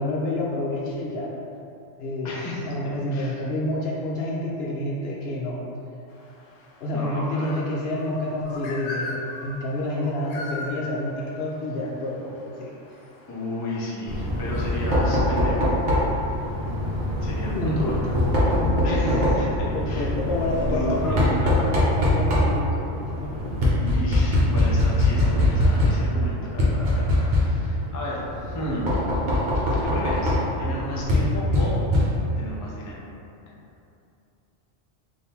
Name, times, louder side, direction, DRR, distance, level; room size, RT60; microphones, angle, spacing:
voice 1, 0.0-1.3 2.0-5.6 6.8-12.7 17.5-18.1 18.5-18.6 19.4-19.5 19.7-22.9 23.2-23.7, left 1 dB, 65° left, -3 dB, 0.7 m, -29 dB
voice 2, 2.2-2.7 3.1-3.4 6.9-7.6 13.3-15.7 17.2-18.0 18.8-20.1 20.6-21.7 23.8-28.9 29.7-30.3 30.6-31.8 32.4-33.1, equal, 25° left, -6 dB, 0.4 m, -33 dB
sound 1, 6.1-19.6, left 2 dB, 90° left, 1.0 m, -42 dB
Knock, 14.1-32.5, left 1 dB, 45° right, 0.8 m, -23 dB
3.6 x 2.6 x 4.2 m, 2.7 s
omnidirectional pair, 1.3 m